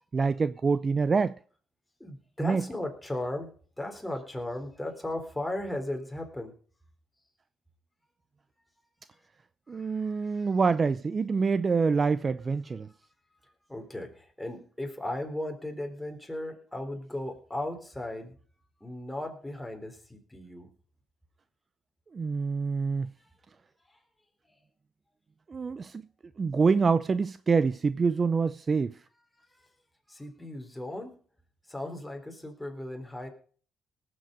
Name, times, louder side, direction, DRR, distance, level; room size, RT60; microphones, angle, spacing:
voice 1, 0.1-1.4 2.4-2.7 9.7-12.9 22.1-23.1 25.5-26.0 26.4-29.0, right 5 dB, 35° right, 0.5 m, -26 dB
voice 2, 2.0-6.6 9.7-10.5 13.7-18.4 18.8-20.7 29.6-29.7 30.1-31.2 31.7-33.3, left 1 dB, 5° left, 3.7 m, -36 dB
19.0 x 7.9 x 5.1 m
cardioid pair, 90°, 0 cm